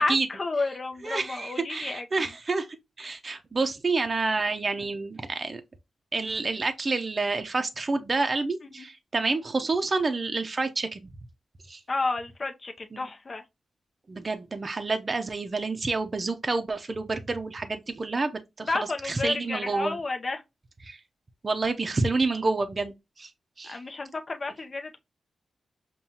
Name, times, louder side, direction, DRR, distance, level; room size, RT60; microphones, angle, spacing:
voice 1, 0.0-2.3 8.8-8.9 11.9-13.4 18.6-20.4 23.6-25.0, left 3 dB, 40° left, 0.6 m, -31 dB
voice 2, 1.0-2.7 3.0-5.6 6.1-11.0 11.7-11.8 12.9-13.1 14.1-18.3 18.6-20.0 20.8-21.0 21.4-23.3 23.6-23.8, right 3 dB, 40° right, 0.5 m, -28 dB
5.4 x 2.2 x 2.8 m
cardioid pair, 80°, 0 cm